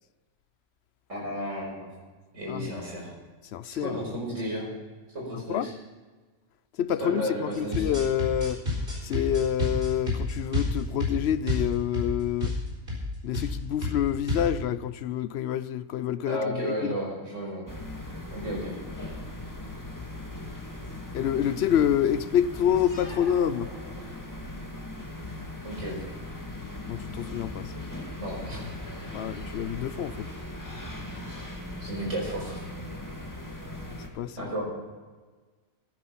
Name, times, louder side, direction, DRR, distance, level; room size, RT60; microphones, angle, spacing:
voice 1, 1.1-1.9 2.3-3.1 3.7-4.7 5.1-5.7 7.0-7.9 16.3-17.7 18.3-18.8 25.6-26.2 28.2-28.7 31.8-32.6 34.4-34.6, equal, 80° right, 5.2 m, -33 dB
voice 2, 3.5-4.0 5.5-5.7 6.8-8.6 9.0-12.6 13.2-16.9 21.1-23.7 26.9-27.7 29.1-30.3 34.1-34.5, left 10 dB, 65° left, 0.7 m, -27 dB
sound 1, 7.5-12.1 12.4-12.6 12.9-13.1 13.3-13.5 13.8-14.5, left 2 dB, 50° right, 4.6 m, -29 dB
sound 2, 17.7-34.1, left 1 dB, 15° left, 1.8 m, -39 dB
sound 3, 22.8-24.6, left 1 dB, 90° left, 3.4 m, -45 dB
15.0 x 9.4 x 5.5 m
omnidirectional pair, 1.3 m